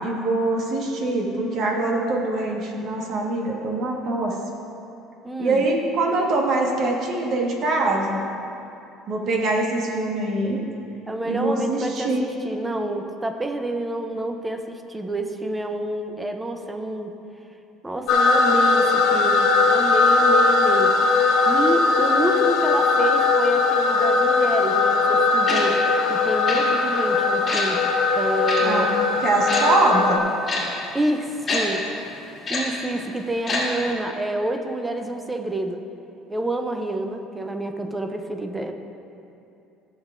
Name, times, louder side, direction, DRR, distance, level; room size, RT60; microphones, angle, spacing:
voice 1, 0.0-4.4 5.4-8.2 9.1-10.6 11.2-12.2 28.6-28.9 29.2-30.2, right 2 dB, 50° right, -1 dB, 1.4 m, -23 dB
voice 2, 5.2-5.6 11.1-17.1 17.8-21.0 21.5-25.8 26.1-29.1 30.9-31.9 32.1-35.8 36.3-38.7, right 1 dB, 10° right, 5 dB, 0.6 m, -28 dB
sound 1, 18.1-30.2, left 3 dB, 60° left, 0.7 m, -19 dB
Tick-tock, 25.5-25.6 26.5-26.6 27.5-27.6 28.5-28.6 29.5-29.6 30.5-30.6 31.5-31.6 32.5-32.6 33.5-33.6 33.9-34.0, left 3 dB, 25° left, 2.1 m, -25 dB
15.0 x 7.4 x 2.5 m, 2.7 s
cardioid pair, 150°, 0 cm